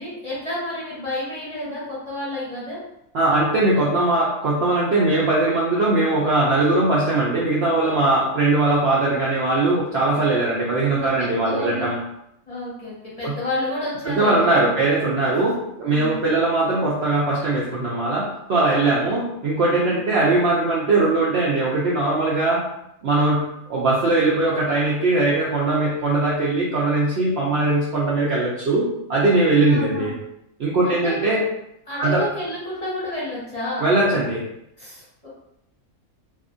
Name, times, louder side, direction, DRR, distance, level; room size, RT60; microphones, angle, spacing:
voice 1, 0.0-2.8 10.9-11.9 12.5-14.7 15.8-16.2 19.9-20.0 29.5-30.1 30.8-31.2 31.9-33.9 34.8-35.3, left 1 dB, 30° left, -10 dB, 0.8 m, -30 dB
voice 2, 3.1-12.0 13.2-13.3 14.0-22.6 23.0-23.4 23.7-30.1 30.6-31.4 32.0-32.2 33.8-34.4, right 2 dB, 65° right, -6 dB, 0.6 m, -20 dB
2.6 x 2.4 x 2.5 m, 0.80 s
omnidirectional pair, 1.5 m